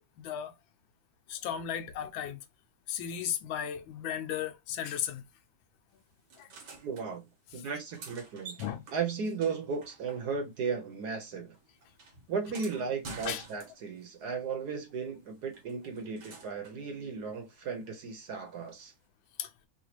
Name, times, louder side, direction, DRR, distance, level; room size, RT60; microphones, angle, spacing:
voice 1, 0.2-0.5 1.3-2.4 2.9-5.3 6.4-6.6 8.6-8.8 13.2-13.4 19.4-19.5, left 9 dB, 80° left, 1.4 m, -35 dB
sound 1, 6.3-7.1 7.7-10.6 10.9-14.1 15.5-16.8 18.8-18.9, right 4 dB, 80° right, 1.9 m, -49 dB
voice 2, 6.8-7.2 7.5-8.5 8.9-11.6 12.3-18.9, right 5 dB, 60° right, 1.4 m, -35 dB
4.2 x 2.4 x 2.9 m
omnidirectional pair, 2.1 m